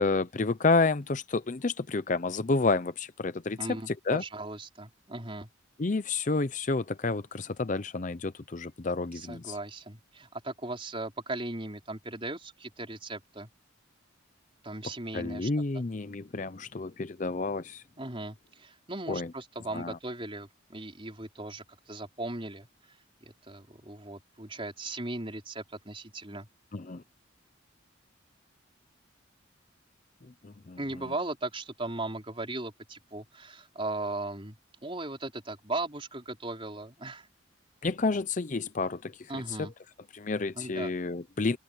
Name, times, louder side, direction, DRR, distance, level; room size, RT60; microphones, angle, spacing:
voice 1, 0.0-3.6 3.9-4.2 5.8-9.5 15.1-17.8 19.1-19.3 19.7-20.0 26.7-27.0 30.2-30.8 37.8-39.7 40.1-41.6, left 3 dB, 40° left, 0.6 m, -30 dB
voice 2, 3.6-5.5 9.1-13.5 14.6-15.8 18.0-26.5 30.8-34.6 34.8-37.3 39.3-39.7 40.5-40.9, right 2 dB, 25° right, 4.5 m, -38 dB
open air
head